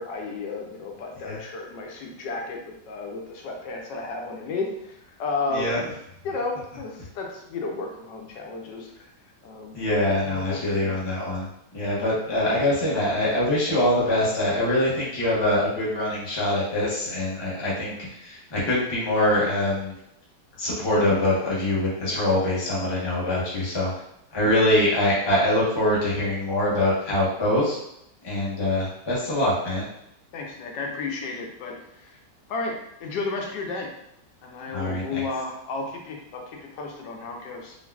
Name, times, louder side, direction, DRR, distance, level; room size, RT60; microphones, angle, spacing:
voice 1, 0.0-6.0 6.2-9.1 9.4-9.8 10.1-11.0 12.1-12.2 30.3-32.2 32.5-32.7 33.0-33.9 34.4-37.8, left 3 dB, 85° left, 1 dB, 1.3 m, -33 dB
voice 2, 9.7-11.5 11.7-19.9 20.6-23.9 24.3-27.8 28.2-29.9 34.7-35.2, left 1 dB, 30° left, -6 dB, 0.4 m, -24 dB
3.8 x 2.2 x 2.3 m, 0.77 s
omnidirectional pair, 1.9 m